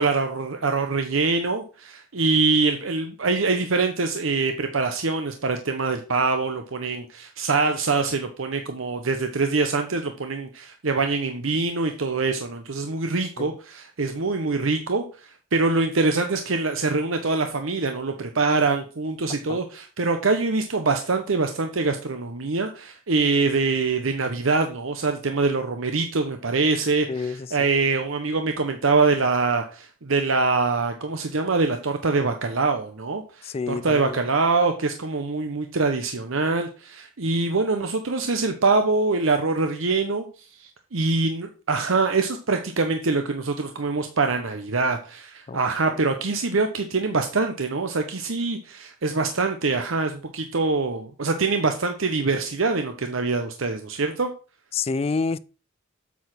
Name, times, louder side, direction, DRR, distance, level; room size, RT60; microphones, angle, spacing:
voice 1, 0.0-54.3, right 3 dB, 70° right, 0.9 m, -24 dB
voice 2, 27.1-27.5 33.4-34.2 45.5-45.6 54.7-55.4, left 4 dB, 30° left, 0.3 m, -28 dB
8.2 x 4.8 x 6.0 m
head